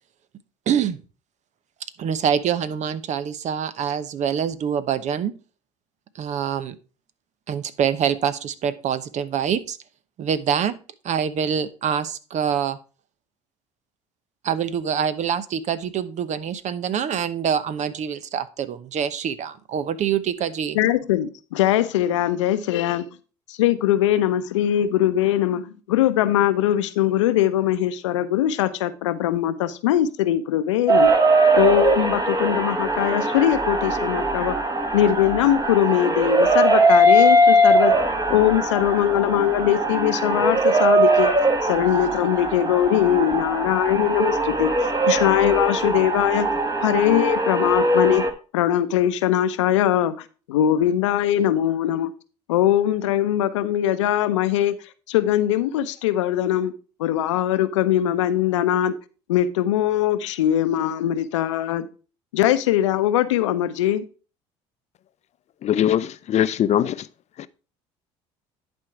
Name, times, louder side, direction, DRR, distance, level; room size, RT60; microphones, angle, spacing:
voice 1, 0.7-1.0 2.0-5.3 6.1-6.8 7.5-9.8 10.2-10.8 11.0-12.8 14.4-20.8, right 8 dB, 50° right, 0.9 m, -25 dB
voice 2, 20.7-23.1 23.5-31.1 31.5-34.6 34.9-37.9 38.3-41.3 41.6-44.7 45.1-46.5 46.8-48.2 48.5-50.1 50.5-52.1 52.5-54.8 55.1-56.7 57.0-58.9 59.3-61.9 62.3-64.0, left 11 dB, 85° left, 0.7 m, -21 dB
sound 1, 30.9-48.3, right 1 dB, 25° right, 1.9 m, -20 dB
voice 3, 65.6-67.1 67.4-67.5, left 10 dB, 50° left, 0.6 m, -21 dB
11.0 x 4.5 x 4.6 m
hypercardioid pair, 65°, 15 cm